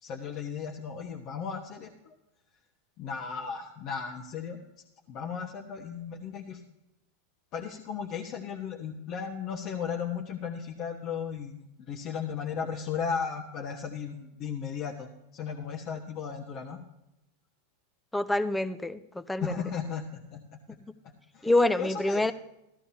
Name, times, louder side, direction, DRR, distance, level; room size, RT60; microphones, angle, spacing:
voice 1, 0.0-2.1 3.0-4.6 5.1-6.6 7.5-16.8 19.4-20.4 21.0-21.5 21.8-22.3, left 6 dB, 45° left, 0 dB, 1.3 m, -35 dB
voice 2, 18.1-19.5 20.8-20.9 21.4-22.3, left 2 dB, 5° left, 12 dB, 0.7 m, -26 dB
15.0 x 12.5 x 2.8 m, 0.87 s
hypercardioid pair, 100°, 0 cm